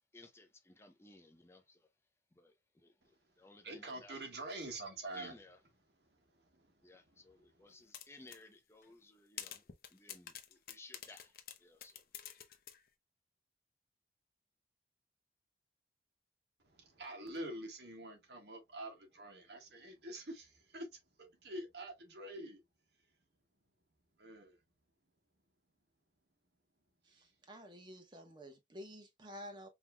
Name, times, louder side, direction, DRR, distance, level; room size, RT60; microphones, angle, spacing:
voice 1, 0.0-1.8 2.3-4.6 5.1-5.6 6.8-9.6 9.9-12.0, left 2 dB, 15° left, 0.5 m, -59 dB
voice 2, 3.6-5.4 6.0-7.5 16.6-22.6 24.2-24.6 27.1-27.3, right 1 dB, 75° right, 1.5 m, -47 dB
sound 1, 7.9-8.4 8.8-8.9 9.4-12.8, left 10 dB, 55° left, 0.6 m, -48 dB
voice 3, 27.0-29.7, equal, 25° right, 1.0 m, -51 dB
5.5 x 3.0 x 2.2 m
head